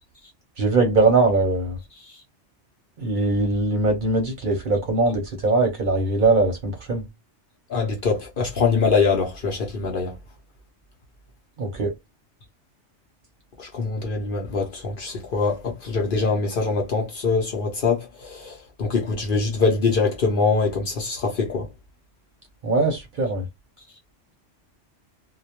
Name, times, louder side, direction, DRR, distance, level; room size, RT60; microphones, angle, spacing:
voice 1, 0.6-1.8 3.0-7.0 11.6-11.9 22.6-23.4, right 3 dB, 50° right, 0.7 m, -21 dB
voice 2, 7.7-10.1 13.6-21.7, left 4 dB, 55° left, 0.7 m, -23 dB
2.2 x 2.1 x 2.8 m
omnidirectional pair, 1.2 m